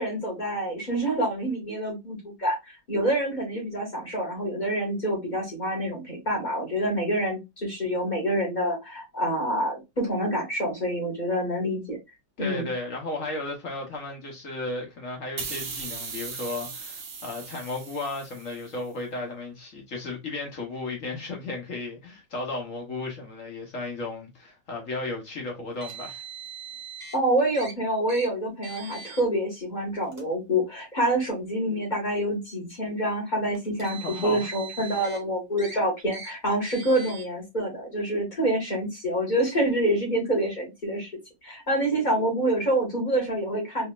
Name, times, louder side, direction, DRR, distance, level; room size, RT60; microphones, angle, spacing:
voice 1, 0.0-2.6 2.9-12.0 12.4-12.7 27.1-41.1 41.4-43.9, right 1 dB, 25° left, 1.9 m, -27 dB
voice 2, 12.4-26.2 33.9-34.5, left 2 dB, 50° left, 1.3 m, -34 dB
sound 1, 15.4-18.8, right 5 dB, 55° right, 0.5 m, -38 dB
Car, 25.8-27.1 27.5-27.7 28.1-28.3 28.6-29.2 30.0-30.2 31.2-31.3 33.5-35.2 35.6-35.8 36.1-36.3 36.7-37.2, right 6 dB, 35° right, 1.4 m, -41 dB
3.9 x 3.2 x 2.4 m
omnidirectional pair, 1.9 m